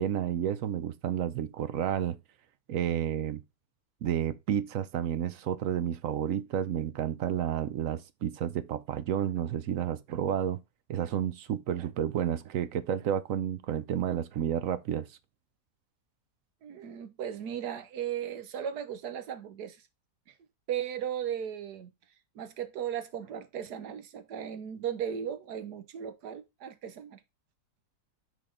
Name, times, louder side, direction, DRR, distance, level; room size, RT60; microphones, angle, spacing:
voice 1, 0.0-2.2 2.7-3.4 4.0-10.6 10.9-15.1, right 10 dB, 65° right, 0.9 m, -31 dB
voice 2, 16.6-19.8 20.7-21.9 22.3-27.2, right 9 dB, 85° right, 1.5 m, -36 dB
6.4 x 4.2 x 5.2 m
omnidirectional pair, 1.7 m